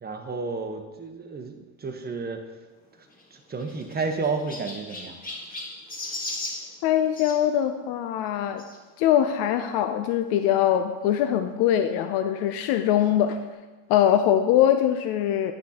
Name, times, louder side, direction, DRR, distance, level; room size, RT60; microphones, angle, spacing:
voice 1, 0.0-2.5 3.3-5.2, right 4 dB, 25° right, 5 dB, 0.9 m, -31 dB
Chirp tweet, 3.1-7.4 8.6-8.8 9.5-9.6 9.8-9.9 11.1-11.2, left 2 dB, 20° left, 1.5 m, -37 dB
voice 2, 6.8-8.6 9.0-13.4 13.9-15.5, left 10 dB, 70° left, 8 dB, 0.5 m, -22 dB
10.0 x 6.0 x 2.8 m, 1.2 s
supercardioid pair, 105°, 41 cm